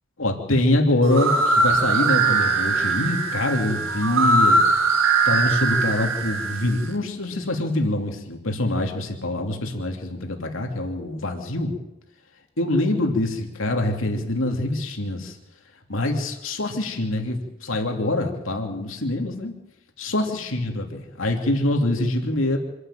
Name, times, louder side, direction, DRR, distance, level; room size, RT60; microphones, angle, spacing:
voice 1, 0.2-4.6 5.2-11.8 12.6-15.3 15.9-19.5 20.0-22.6, left 1 dB, 85° left, 3 dB, 2.9 m, -24 dB
sound 1, 1.0-6.8, right 3 dB, 85° right, 2.2 m, -21 dB
26.0 x 11.5 x 9.1 m, 0.90 s
head